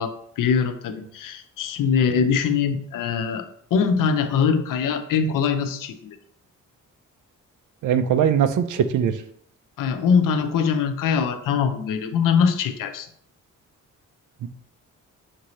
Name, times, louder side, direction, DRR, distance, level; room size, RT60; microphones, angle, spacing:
voice 1, 0.0-3.4 3.7-6.0 9.8-13.1, left 6 dB, 85° left, 8 dB, 0.6 m, -22 dB
voice 2, 7.8-9.2 14.4-14.5, right 8 dB, 70° right, 10 dB, 0.5 m, -21 dB
5.9 x 2.7 x 3.0 m, 0.64 s
cardioid pair, 115°, 31 cm